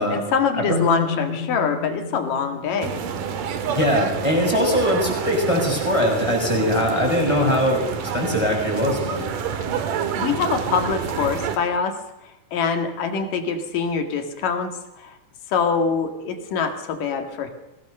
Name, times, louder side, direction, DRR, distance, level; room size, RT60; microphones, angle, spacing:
voice 1, 0.0-3.0 10.2-12.0 12.5-14.7 15.0-15.1 15.5-17.5, left 5 dB, 65° left, 6 dB, 3.4 m, -24 dB
sound 1, 0.7-4.6, left 3 dB, 35° left, 3.2 m, -31 dB
sound 2, 2.8-11.6, right 7 dB, 65° right, 3.0 m, -28 dB
voice 2, 3.7-9.2, left 1 dB, 5° left, 0 dB, 6.4 m, -21 dB
22.5 x 17.0 x 6.6 m, 0.97 s
omnidirectional pair, 4.3 m